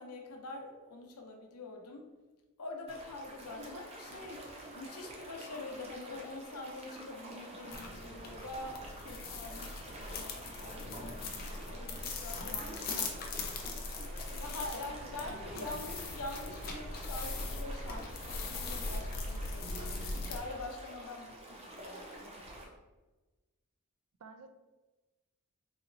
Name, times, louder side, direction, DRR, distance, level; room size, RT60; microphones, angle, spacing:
voice 1, 0.0-2.1 2.6-11.2 11.7-13.0 13.5-22.7, left 2 dB, 85° left, 2 dB, 0.7 m, -45 dB
sound 1, 2.9-22.6, right 1 dB, 30° right, 0.6 m, -48 dB
sound 2, 7.7-20.4, left 3 dB, 45° left, 0.5 m, -40 dB
voice 2, 12.5-13.2 14.7-15.8 24.2-24.5, right 4 dB, 75° right, 7 dB, 0.4 m, -50 dB
4.0 x 2.9 x 2.6 m, 1.2 s
head